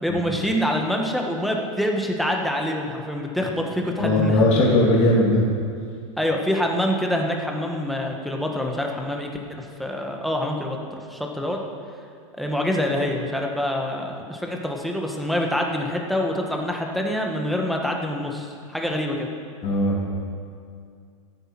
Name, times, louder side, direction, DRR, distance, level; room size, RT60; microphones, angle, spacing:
voice 1, 0.0-4.7 6.2-10.8 11.1-11.6 12.4-19.3, left 1 dB, ahead, 1 dB, 1.6 m, -26 dB
voice 2, 4.0-5.4 19.6-20.0, left 1 dB, 45° left, -3 dB, 2.8 m, -19 dB
14.0 x 8.0 x 6.0 m, 2.3 s
hypercardioid pair, 110°, 17 cm